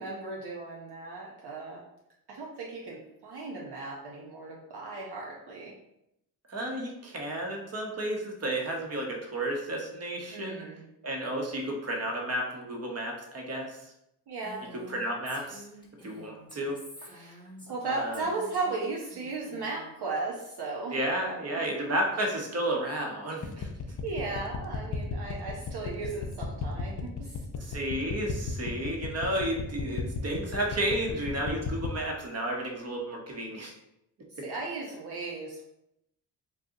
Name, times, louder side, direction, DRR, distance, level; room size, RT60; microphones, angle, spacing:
voice 1, 0.0-1.8 2.3-5.7 10.3-10.8 14.3-14.6 17.0-17.4 17.7-21.0 24.0-27.4 34.4-35.6, right 3 dB, 60° right, -3 dB, 0.8 m, -36 dB
voice 2, 6.5-10.7 11.0-13.9 14.9-15.6 16.0-16.8 17.9-18.3 20.9-23.7 27.6-33.7, right 1 dB, 35° right, 0 dB, 1.0 m, -32 dB
Female speech woman speaking, 14.4-17.8 18.1-19.9, equal, 10° left, 1.0 m, -49 dB
sound 1, 23.4-32.0, left 5 dB, 40° left, 0.6 m, -34 dB
2.6 x 2.3 x 3.7 m, 0.80 s
supercardioid pair, 55°, 45 cm